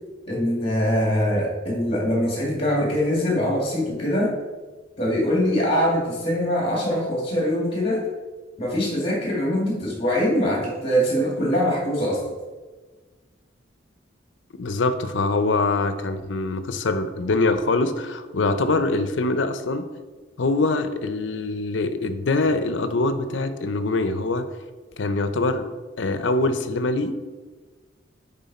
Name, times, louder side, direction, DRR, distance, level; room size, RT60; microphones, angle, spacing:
voice 1, 0.2-4.3 5.0-8.0 8.6-12.2, equal, 30° left, -3 dB, 2.2 m, -23 dB
voice 2, 14.6-19.9 20.4-24.5 25.0-25.7 26.0-27.1, left 3 dB, 80° left, 10 dB, 0.6 m, -23 dB
9.5 x 3.8 x 4.2 m, 1.4 s
head